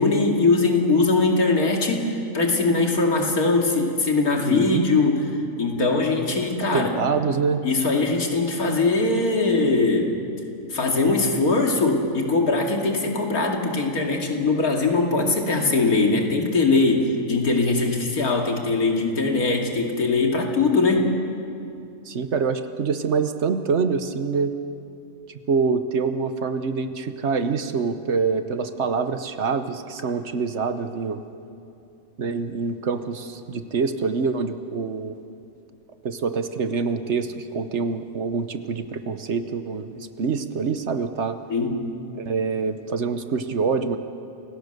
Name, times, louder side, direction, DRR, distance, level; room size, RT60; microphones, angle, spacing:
voice 1, 0.0-5.3 5.6-6.9 7.6-10.2 10.7-21.2 41.5-41.9, left 3 dB, 90° left, 1 dB, 2.9 m, -21 dB
voice 2, 4.5-4.8 6.7-7.6 22.1-24.5 25.5-31.2 32.2-35.1 36.0-41.4 42.1-44.0, right 5 dB, 55° right, 9 dB, 1.2 m, -25 dB
28.5 x 17.0 x 6.7 m, 2.6 s
omnidirectional pair, 1.5 m